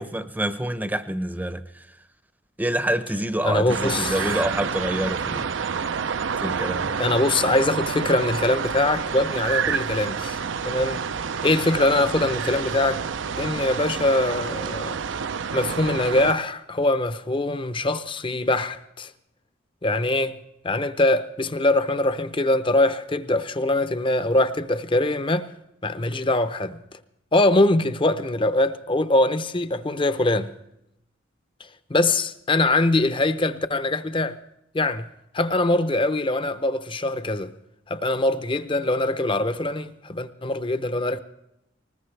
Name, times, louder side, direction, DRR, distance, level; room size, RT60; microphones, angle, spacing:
voice 1, 0.0-1.8 2.6-5.5 6.4-6.9, right 1 dB, 10° right, 0.7 m, -27 dB
voice 2, 3.4-4.3 7.0-11.0 11.4-13.0 13.4-15.0 15.5-19.1 19.8-20.4 20.6-25.5 25.8-26.8 27.3-30.5 31.9-34.4 34.7-37.5 37.9-41.2, left 2 dB, 25° left, 0.7 m, -23 dB
sound 1, 3.7-16.3, right 6 dB, 70° right, 0.5 m, -28 dB
20.0 x 20.0 x 3.3 m
head